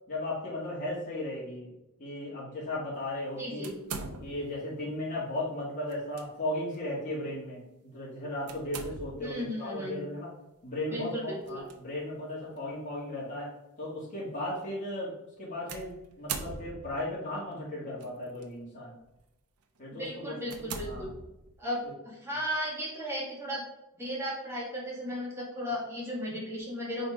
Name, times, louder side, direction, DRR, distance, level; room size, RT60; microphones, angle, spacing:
voice 1, 0.1-1.7 2.0-3.7 4.2-10.3 10.6-13.5 13.8-15.1 15.4-18.9 19.8-20.4 20.8-21.1 21.8-21.9, left 1 dB, 35° left, -8 dB, 2.3 m, -36 dB
voice 2, 3.4-3.7 9.2-10.1 10.9-11.7 20.0-21.1 21.6-23.6 23.9-27.1, equal, 10° right, -5 dB, 1.9 m, -35 dB
sound 1, 3.6-4.6 5.9-6.3 6.7-6.8 8.5-9.4 11.4-11.7 12.6-12.7 15.7-17.1 18.0-18.4 19.0-19.2 19.8-19.9 20.5-21.7, right 5 dB, 80° right, 0.8 m, -41 dB
5.1 x 4.1 x 4.9 m, 0.90 s
head